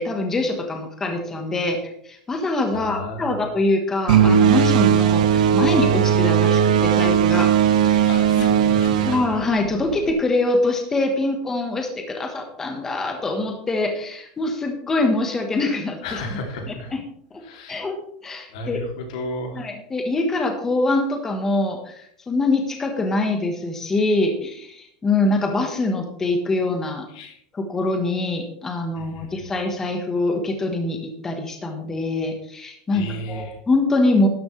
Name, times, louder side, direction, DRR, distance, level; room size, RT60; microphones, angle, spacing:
voice 1, 0.0-1.8 2.0-8.1 8.4-8.5 9.1-16.2 16.9-17.0 17.3-17.4 17.7-18.0 18.2-18.8 19.5-27.1 27.5-34.3, left 2 dB, 10° left, 4 dB, 1.2 m, -24 dB
voice 2, 2.7-3.5 8.1-9.2 16.0-16.9 17.4-17.8 18.5-19.7 27.1-27.4 28.9-29.5 32.9-33.6, left 1 dB, 60° left, 2 dB, 2.7 m, -33 dB
sound 1, 4.1-10.1, right 8 dB, 80° right, 1.1 m, -18 dB
12.0 x 10.5 x 3.2 m, 0.68 s
supercardioid pair, 180°, 4 cm